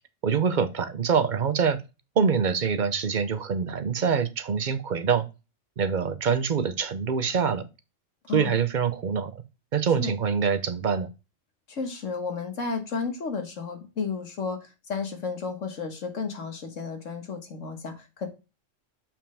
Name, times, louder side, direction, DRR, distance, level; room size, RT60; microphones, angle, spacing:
voice 1, 0.2-1.8 2.2-5.3 5.8-7.6 8.3-9.3 9.7-11.1, right 6 dB, 45° right, 0.7 m, -25 dB
voice 2, 11.7-18.3, left 5 dB, 70° left, 1.8 m, -32 dB
7.0 x 5.8 x 3.4 m
omnidirectional pair, 1.3 m